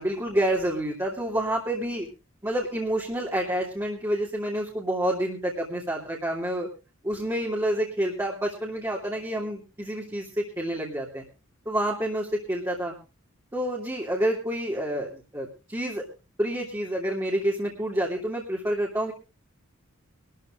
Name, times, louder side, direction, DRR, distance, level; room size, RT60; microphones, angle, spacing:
voice 1, 0.0-2.1 2.4-6.7 7.0-11.2 11.6-12.9 13.5-16.0 16.4-19.1, right 1 dB, 15° right, -3 dB, 2.8 m, -28 dB
25.0 x 13.0 x 2.5 m, 0.30 s
head